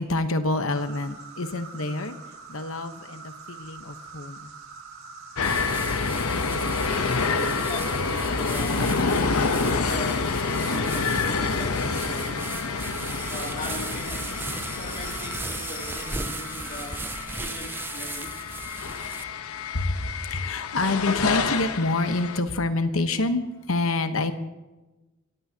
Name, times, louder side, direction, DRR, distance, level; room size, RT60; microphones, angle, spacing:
voice 1, 0.0-2.1 2.5-4.5 9.0-9.5 10.2-10.8 11.7-11.8 12.8-12.9 19.7-24.3, left 2 dB, 70° left, 9 dB, 1.1 m, -28 dB
Insect, 0.7-17.2, right 4 dB, 80° right, 1.8 m, -44 dB
sound 1, 5.4-22.4, left 4 dB, 90° left, 1.0 m, -28 dB
sound 2, 5.4-19.2, right 3 dB, 10° right, 0.4 m, -37 dB
voice 2, 7.6-10.3 10.7-12.5 13.3-14.3 14.8-17.1 17.4-18.4, left 2 dB, 35° left, 0 dB, 2.6 m, -39 dB
28.5 x 15.5 x 2.9 m, 1.1 s
head